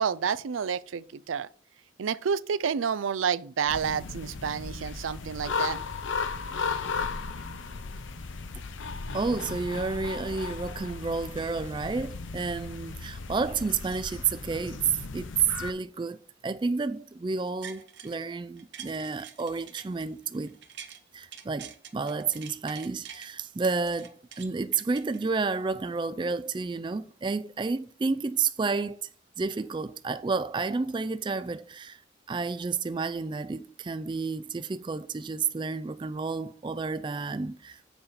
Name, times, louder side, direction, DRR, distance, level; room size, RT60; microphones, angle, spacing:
voice 1, 0.0-1.5 2.0-5.8, right 7 dB, 85° right, 0.4 m, -29 dB
sound 1, 3.7-15.7, left 4 dB, 80° left, 0.7 m, -36 dB
voice 2, 9.1-20.6 21.1-29.1 29.4-32.0 32.3-37.8, right 4 dB, 25° right, 0.3 m, -31 dB
sound 2, 17.4-18.2 18.6-21.0 21.3-23.3 23.6-25.6 26.1-26.2, right 9 dB, 65° right, 0.9 m, -46 dB
7.1 x 5.0 x 5.6 m
head